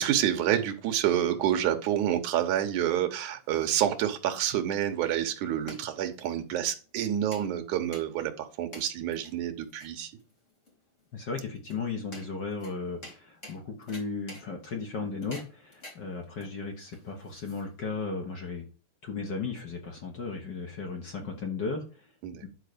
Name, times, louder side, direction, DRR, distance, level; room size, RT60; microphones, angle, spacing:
voice 1, 0.0-10.1 22.2-22.4, right 11 dB, 80° right, 5 dB, 2.6 m, -28 dB
sound 1, 3.1-18.0, left 1 dB, 25° left, 2.8 m, -51 dB
voice 2, 11.1-18.6 19.0-22.1 22.4-22.5, left 4 dB, 50° left, 2 dB, 1.5 m, -35 dB
10.5 x 4.0 x 6.8 m, 0.35 s
omnidirectional pair, 3.5 m